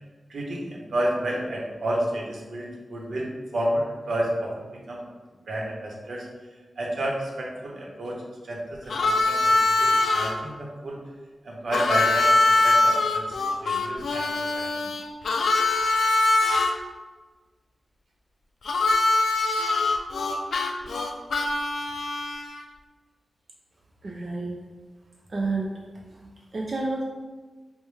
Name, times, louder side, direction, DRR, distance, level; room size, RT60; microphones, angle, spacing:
voice 1, 0.3-5.0 5.5-6.3 6.8-11.0 11.4-14.9 16.2-16.3, right 1 dB, 65° right, -2 dB, 0.7 m, -31 dB
Harmonica, 8.9-10.3 11.7-16.7 18.7-22.6, left 2 dB, 80° left, 0.3 m, -23 dB
voice 2, 24.0-24.5 25.3-25.7 26.5-27.0, right 3 dB, 35° right, -3 dB, 0.3 m, -29 dB
4.6 x 2.1 x 3.3 m, 1.4 s
wide cardioid pair, 175°, 0 cm